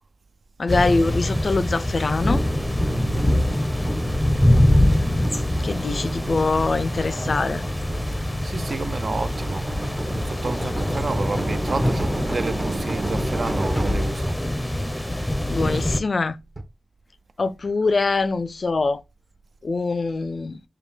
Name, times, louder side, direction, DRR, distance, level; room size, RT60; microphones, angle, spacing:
voice 1, 0.6-2.4 5.6-7.6 15.5-16.4 17.4-19.0 19.6-20.6, left 3 dB, 60° left, 0.4 m, -23 dB
sound 1, 0.7-16.0, left 1 dB, 10° left, 0.6 m, -24 dB
sound 2, 2.2-14.2 15.6-16.3 16.6-16.7, right 1 dB, 40° right, 0.9 m, -33 dB
voice 2, 2.9-3.5 8.4-9.7 10.1-14.4, right 3 dB, 60° right, 0.5 m, -30 dB
5.2 x 2.2 x 3.2 m
cardioid pair, 45°, 0 cm